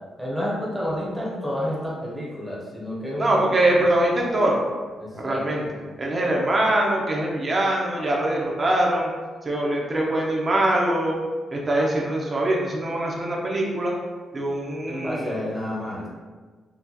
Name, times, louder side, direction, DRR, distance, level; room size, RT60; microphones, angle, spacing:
voice 1, 0.2-3.5 5.0-5.4 14.9-16.1, equal, 5° left, -6 dB, 0.8 m, -30 dB
voice 2, 3.2-4.6 5.1-5.6 6.0-9.1 9.4-11.1 11.5-13.9 14.3-15.3, right 1 dB, 30° right, -2 dB, 0.8 m, -23 dB
5.9 x 2.5 x 2.8 m, 1.4 s
wide cardioid pair, 150°, 0 cm